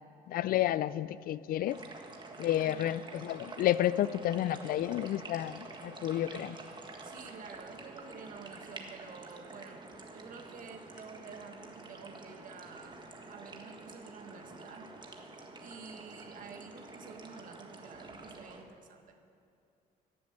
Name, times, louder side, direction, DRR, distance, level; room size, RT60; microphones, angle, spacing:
voice 1, 0.3-1.8 2.4-6.6, left 13 dB, 60° left, 17 dB, 0.4 m, -31 dB
sound 1, 1.7-18.6, right 2 dB, 25° right, 1.6 m, -48 dB
voice 2, 2.6-3.1 7.0-13.0 13.3-14.9 15.6-19.2, right 5 dB, 55° right, 5 dB, 1.6 m, -50 dB
14.5 x 7.4 x 9.9 m, 2.5 s
cardioid pair, 110°, 17 cm